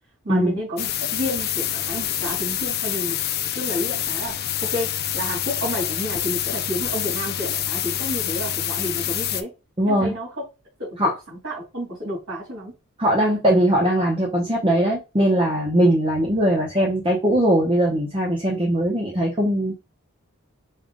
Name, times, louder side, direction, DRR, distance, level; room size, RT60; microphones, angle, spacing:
voice 1, 0.2-3.2 3.5-9.5 9.8-10.3 10.8-11.1 11.4-12.7, equal, 65° right, 2.7 m, -30 dB
sound 1, 0.8-9.4, left 11 dB, 45° left, 0.4 m, -26 dB
voice 2, 9.8-10.1 11.0-11.1 13.0-19.7, right 1 dB, 25° right, 0.8 m, -20 dB
5.4 x 2.4 x 3.8 m
head